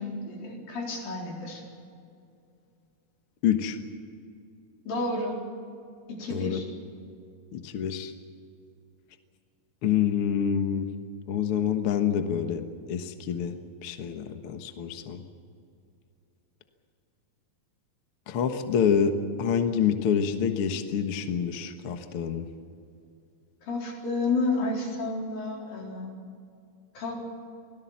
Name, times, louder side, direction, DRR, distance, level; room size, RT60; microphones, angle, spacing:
voice 1, 0.0-1.6 4.9-5.4 6.1-6.6 23.6-26.2 26.9-27.1, left 2 dB, 85° left, -1 dB, 6.0 m, -31 dB
voice 2, 3.4-3.8 6.3-6.6 7.5-8.1 9.8-10.9 11.3-13.6 13.8-15.2 18.3-22.5, left 8 dB, 55° left, 6 dB, 1.8 m, -27 dB
25.5 x 17.5 x 7.4 m, 2.5 s
omnidirectional pair, 3.9 m